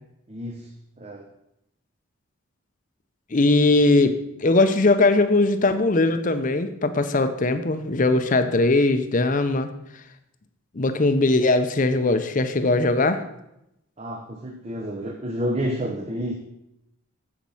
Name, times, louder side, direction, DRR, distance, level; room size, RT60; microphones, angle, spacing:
voice 1, 0.3-0.7 1.0-1.3 14.0-16.3, equal, 30° right, 3 dB, 0.7 m, -29 dB
voice 2, 3.3-9.7 10.7-13.2, left 2 dB, 40° left, 10 dB, 0.6 m, -20 dB
7.5 x 7.3 x 5.5 m, 0.84 s
head